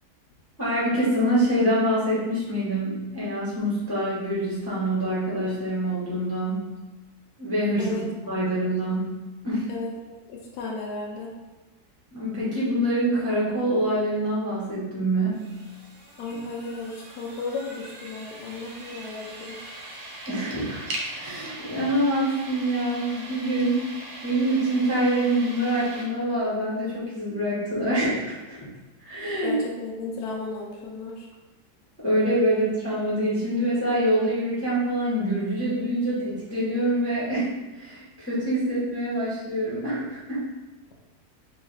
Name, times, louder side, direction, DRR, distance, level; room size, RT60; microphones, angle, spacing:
voice 1, 0.6-6.7 7.4-8.0 8.3-9.2 9.4-9.7 12.1-15.4 20.3-20.8 21.1-28.6 29.0-29.6 32.0-37.5 37.7-40.4, right 1 dB, 10° left, -9 dB, 0.8 m, -25 dB
voice 2, 9.7-11.3 16.2-19.6 29.4-31.3, left 3 dB, 85° left, -1 dB, 1.1 m, -34 dB
sound 1, 15.3-26.1, right 2 dB, 70° right, 1.1 m, -40 dB
3.2 x 2.8 x 4.0 m, 1.1 s
omnidirectional pair, 1.7 m